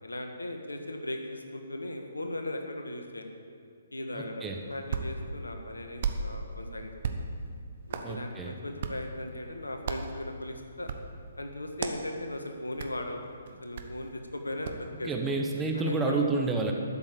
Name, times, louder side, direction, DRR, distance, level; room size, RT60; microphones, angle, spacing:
voice 1, 0.0-3.3 3.9-7.1 7.9-10.9 11.4-13.2 13.6-15.3 15.7-16.3, left 1 dB, 80° left, 4 dB, 1.5 m, -38 dB
voice 2, 4.1-4.6 8.0-8.5 15.0-16.7, right 3 dB, 10° right, 1 dB, 1.1 m, -29 dB
Hands, 4.5-14.9, right 4 dB, 45° right, 1.1 m, -38 dB
12.5 x 7.0 x 8.2 m, 2.3 s
figure-of-eight pair, 130°, 0 cm